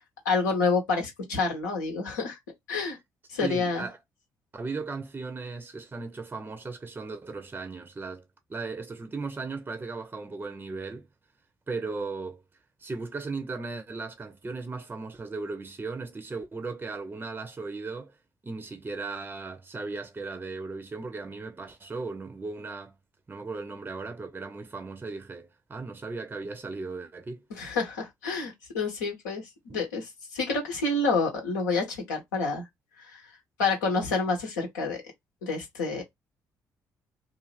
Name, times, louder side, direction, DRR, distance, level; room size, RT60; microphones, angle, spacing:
voice 1, 0.2-2.4 2.7-3.0 3.3-3.8 27.5-32.6 33.0-33.2 33.6-35.0 35.4-36.0, left 3 dB, 80° left, 0.9 m, -28 dB
voice 2, 3.4-4.0 4.5-8.2 8.5-11.1 11.7-12.4 12.8-18.2 18.4-22.9 23.3-27.4 29.7-29.8, right 3 dB, 20° right, 0.5 m, -37 dB
2.5 x 2.5 x 3.2 m
figure-of-eight pair, 45°, 9 cm